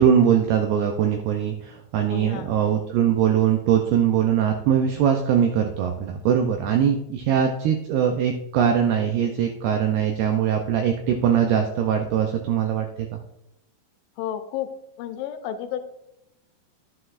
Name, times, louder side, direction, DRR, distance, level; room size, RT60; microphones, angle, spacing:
voice 1, 0.0-13.2, right 8 dB, 85° right, 3 dB, 2.3 m, -21 dB
voice 2, 2.1-2.6 7.3-7.4 14.2-14.7 15.0-15.8, left 10 dB, 80° left, 9 dB, 2.9 m, -32 dB
12.0 x 7.9 x 2.5 m, 0.81 s
omnidirectional pair, 5.5 m